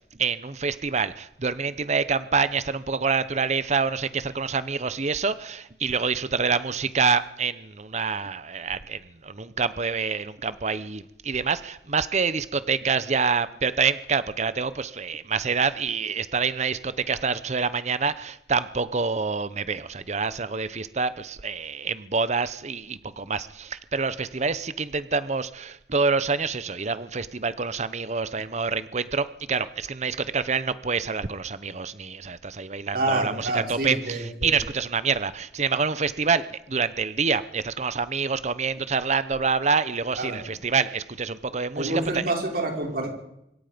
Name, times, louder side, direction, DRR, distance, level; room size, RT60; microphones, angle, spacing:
voice 1, 0.2-42.2, right 5 dB, 40° right, 14 dB, 0.8 m, -27 dB
voice 2, 32.9-34.5 40.2-40.4 41.8-43.1, right 2 dB, 55° right, 1 dB, 5.6 m, -27 dB
25.5 x 22.5 x 5.2 m, 0.82 s
head